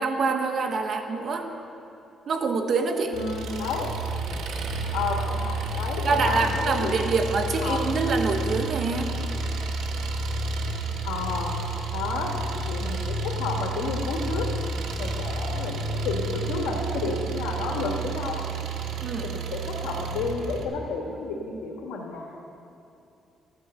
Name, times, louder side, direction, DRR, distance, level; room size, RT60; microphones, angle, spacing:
voice 1, 0.0-1.5 2.3-3.2 6.0-9.2 19.0-19.3, right 4 dB, 55° right, 5 dB, 1.2 m, -25 dB
voice 2, 3.1-3.9 4.9-6.9 7.6-7.8 11.0-11.5 11.9-12.3 12.6-14.5 15.0-18.4 19.2-22.3, left 4 dB, 90° left, -2 dB, 1.4 m, -31 dB
Engine, 3.1-20.6, right 2 dB, 75° right, 1.2 m, -30 dB
14.0 x 9.4 x 6.7 m, 2.8 s
cardioid pair, 90°, 0 cm